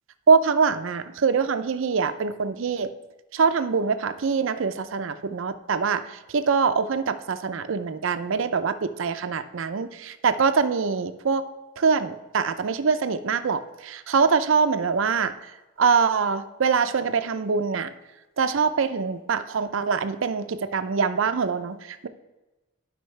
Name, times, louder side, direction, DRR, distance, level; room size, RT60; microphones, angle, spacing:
voice 1, 0.3-2.9 3.3-11.4 11.8-15.3 15.8-17.9 18.4-22.1, right 5 dB, 70° right, 11 dB, 0.5 m, -24 dB
11.0 x 5.3 x 3.2 m, 1.1 s
head